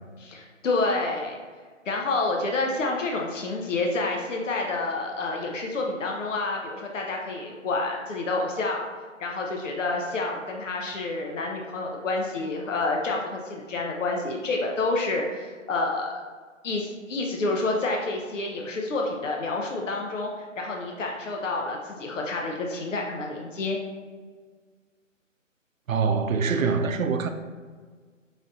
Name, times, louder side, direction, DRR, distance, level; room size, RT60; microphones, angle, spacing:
voice 1, 0.2-1.4 1.9-8.8 9.2-16.2 16.6-23.8, left 3 dB, 70° left, 0 dB, 0.8 m, -28 dB
voice 2, 25.9-27.3, right 5 dB, 85° right, 8 dB, 0.6 m, -24 dB
5.2 x 2.5 x 3.9 m, 1.5 s
hypercardioid pair, 160°, 39 cm